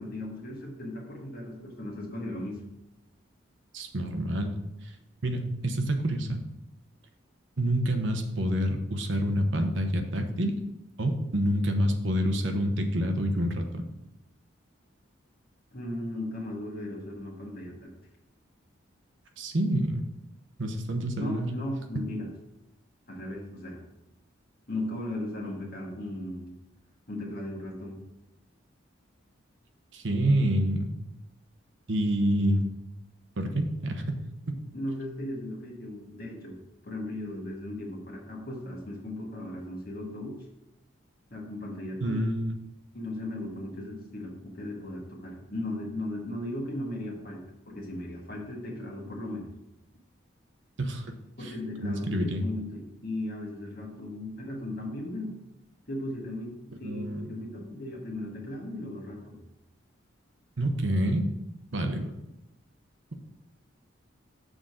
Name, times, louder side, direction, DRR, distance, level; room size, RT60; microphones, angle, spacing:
voice 1, 0.0-2.6 15.7-17.9 21.2-22.3 23.1-23.8 24.7-26.5 27.1-28.0 34.7-36.6 36.8-40.4 41.3-42.2 42.9-49.5 51.4-55.4 55.9-59.4, left 1 dB, 50° left, -2 dB, 1.7 m, -37 dB
voice 2, 3.7-4.5 4.8-4.9 5.2-6.4 7.6-10.6 11.0-13.8 19.4-20.0 20.6-21.5 29.9-30.9 31.9-32.6 33.4-34.3 42.0-42.5 50.8-51.1 51.4-51.5 51.8-52.4 56.8-57.3 60.6-61.3 61.7-62.1, equal, 70° right, 6 dB, 0.9 m, -27 dB
6.4 x 3.8 x 6.2 m, 0.90 s
head